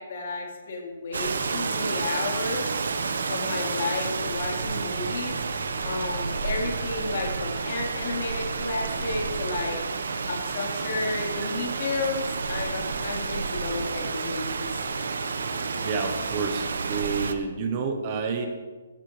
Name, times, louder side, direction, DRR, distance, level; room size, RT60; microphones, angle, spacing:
voice 1, 0.0-3.0 3.3-5.4 5.8-9.8 10.3-14.7, left 3 dB, 45° left, -2 dB, 4.2 m, -32 dB
Rain, 1.1-17.3, right 4 dB, 75° right, 1.3 m, -30 dB
voice 2, 15.7-18.5, right 5 dB, 25° right, 5 dB, 1.1 m, -29 dB
18.5 x 15.5 x 3.4 m, 1.3 s
hypercardioid pair, 175°, 0 cm